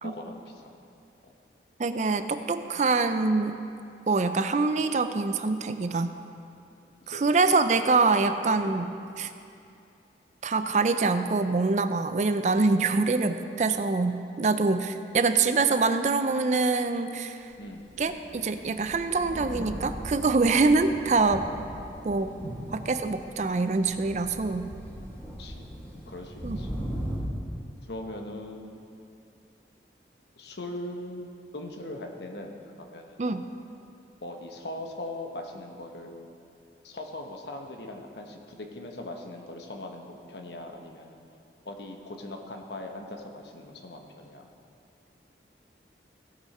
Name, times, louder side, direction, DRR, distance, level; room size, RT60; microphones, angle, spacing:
voice 1, 0.0-0.7 1.2-1.3 2.8-2.9 7.1-7.2 8.1-8.3 8.5-8.8 14.5-14.9 17.6-17.9 22.2-22.9 25.4-25.8 26.0-26.8 27.8-29.0 30.4-33.2 34.2-36.3 36.8-41.2 41.6-44.5, left 1 dB, 70° left, 3 dB, 1.1 m, -41 dB
voice 2, 1.8-3.6 4.1-6.1 7.1-9.3 10.4-17.5 18.0-21.5 22.0-22.4 22.7-24.7 26.4-26.6 33.2-33.4, right 3 dB, 40° right, 10 dB, 0.4 m, -25 dB
Thunder, 17.7-27.2, equal, 10° left, 1.9 m, -39 dB
17.5 x 6.4 x 4.3 m, 2.6 s
head